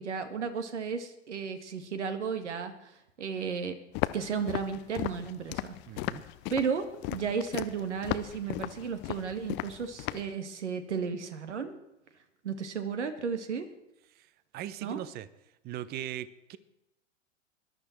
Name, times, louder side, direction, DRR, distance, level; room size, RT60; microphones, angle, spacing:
voice 1, 0.0-2.9 3.2-3.8 4.1-5.7 6.5-11.8 12.4-13.7 14.8-15.0, right 6 dB, 70° right, 8 dB, 2.0 m, -34 dB
Walk footsteps, 3.9-10.3, left 18 dB, 30° left, 0.6 m, -36 dB
voice 2, 5.9-6.2 14.2-14.3 14.5-15.3 15.6-16.6, right 12 dB, 25° right, 17 dB, 0.8 m, -39 dB
19.5 x 11.5 x 4.5 m, 0.90 s
figure-of-eight pair, 100°, 36 cm